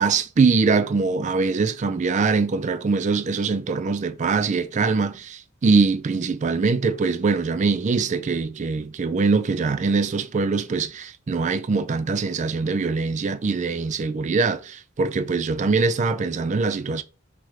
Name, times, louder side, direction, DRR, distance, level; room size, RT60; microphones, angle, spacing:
voice 1, 0.0-17.0, right 4 dB, 35° right, 0.3 m, -23 dB
4.8 x 2.9 x 3.1 m
head